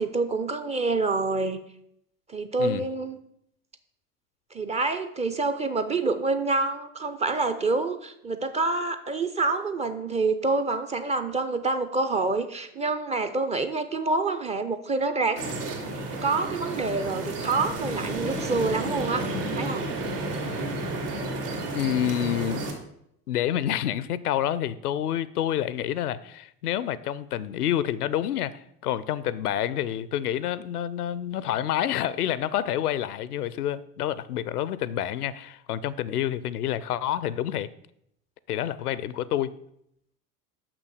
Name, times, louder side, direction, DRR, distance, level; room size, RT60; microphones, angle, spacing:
voice 1, 0.0-1.6 2.3-3.2 4.5-15.4 16.2-19.9, right 3 dB, 15° right, 9 dB, 0.4 m, -27 dB
sound 1, 15.4-22.7, right 2 dB, 80° right, 2.3 m, -31 dB
voice 2, 21.7-22.7 23.3-37.7 38.5-39.6, left 11 dB, 75° left, 18 dB, 0.6 m, -28 dB
6.4 x 6.1 x 6.4 m, 0.75 s
figure-of-eight pair, 70°, 46 cm